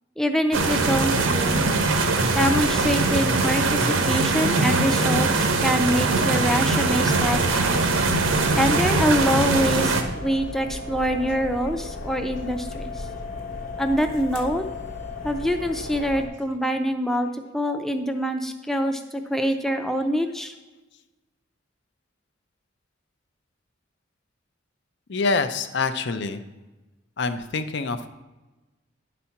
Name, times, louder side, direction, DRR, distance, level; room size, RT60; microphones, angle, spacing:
voice 1, 0.2-1.7 2.3-7.8 8.5-13.1 13.8-14.6 15.2-20.5, equal, ahead, 6 dB, 0.5 m, -25 dB
sound 1, 0.5-10.0, right 3 dB, 85° right, 1.0 m, -22 dB
sound 2, 7.1-16.3, left 2 dB, 40° left, 1.0 m, -35 dB
voice 2, 25.1-26.4 27.2-28.1, left 4 dB, 60° left, 11 dB, 0.6 m, -26 dB
10.5 x 4.2 x 5.8 m, 1.1 s
head